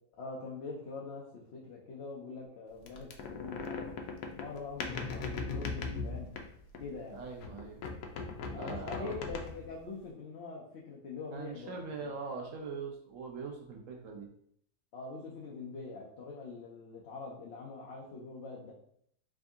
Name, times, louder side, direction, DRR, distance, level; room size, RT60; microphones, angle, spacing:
voice 1, 0.2-3.9 4.3-6.3 6.8-7.2 8.5-12.2 14.9-18.7, left 4 dB, 55° left, -3 dB, 0.7 m, -44 dB
sound 1, 2.9-7.0 7.4-9.8, left 4 dB, 90° left, 1.1 m, -39 dB
voice 2, 7.1-7.8 8.5-9.2 11.3-14.3, right 4 dB, 60° right, 1 dB, 1.1 m, -42 dB
3.6 x 2.6 x 3.5 m, 0.68 s
omnidirectional pair, 1.6 m